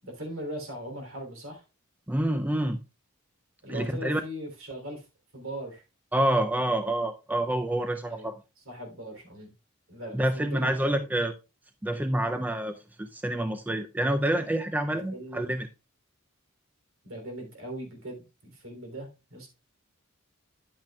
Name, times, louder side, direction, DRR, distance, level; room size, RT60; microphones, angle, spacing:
voice 1, 0.0-1.6 3.6-5.0 5.3-5.8 8.1-9.5 9.9-11.0 14.9-15.5 17.0-19.5, right 1 dB, 65° right, 3.0 m, -40 dB
voice 2, 2.1-2.8 3.7-4.2 6.1-8.3 10.1-11.3 11.8-15.7, right 1 dB, 10° right, 0.4 m, -27 dB
10.5 x 8.1 x 2.3 m
head